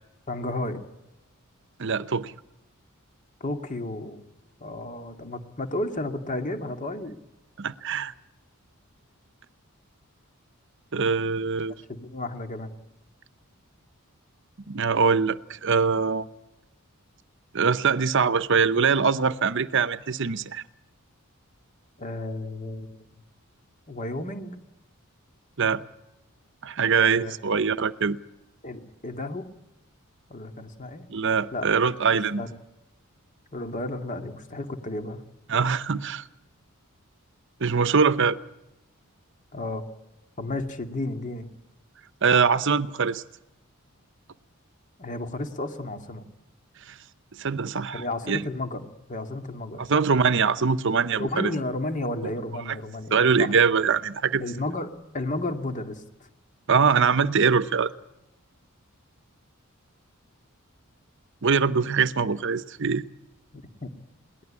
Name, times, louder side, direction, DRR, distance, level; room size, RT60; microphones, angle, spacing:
voice 1, 0.3-0.8 3.4-4.2 4.6-7.2 11.9-12.7 22.0-23.0 23.9-24.6 27.0-27.3 28.6-29.5 30.3-31.1 31.5-31.7 32.4-32.5 33.5-35.2 39.5-39.8 40.4-41.5 45.0-46.3 47.9-50.0 51.2-53.5 54.4-56.0 63.5-63.9, left 2 dB, 35° left, 2.3 m, -32 dB
voice 2, 1.8-2.3 7.6-8.1 10.9-11.7 14.7-16.3 17.5-20.6 25.6-25.8 26.6-28.2 31.1-32.4 35.5-36.2 37.6-38.4 42.2-43.2 46.9-47.0 47.4-48.4 49.8-51.5 52.7-52.8 53.1-54.4 56.7-57.9 61.4-63.0, right 5 dB, 55° right, 0.8 m, -23 dB
22.0 x 18.5 x 8.7 m
head